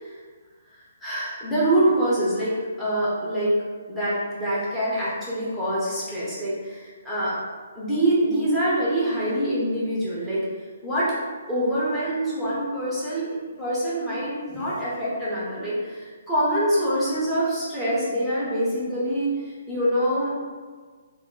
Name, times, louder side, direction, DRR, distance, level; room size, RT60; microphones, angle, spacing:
voice 1, 1.0-3.5 3.9-7.4 7.7-10.5 10.8-11.1 11.5-20.3, right 1 dB, 5° left, -10 dB, 0.6 m, -25 dB
3.4 x 2.3 x 3.6 m, 1.5 s
hypercardioid pair, 180°, 0 cm